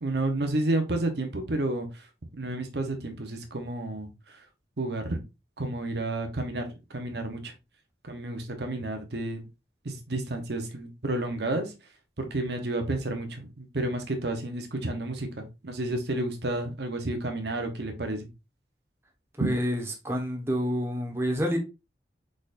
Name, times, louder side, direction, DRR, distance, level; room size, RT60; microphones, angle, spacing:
voice 1, 0.0-2.1 2.3-4.4 4.8-5.2 5.6-7.5 8.0-9.5 9.8-11.7 12.2-18.3 19.4-19.5, right 2 dB, 70° right, 0.9 m, -31 dB
voice 2, 19.4-21.6, equal, 15° right, 1.1 m, -28 dB
4.9 x 4.3 x 2.5 m
head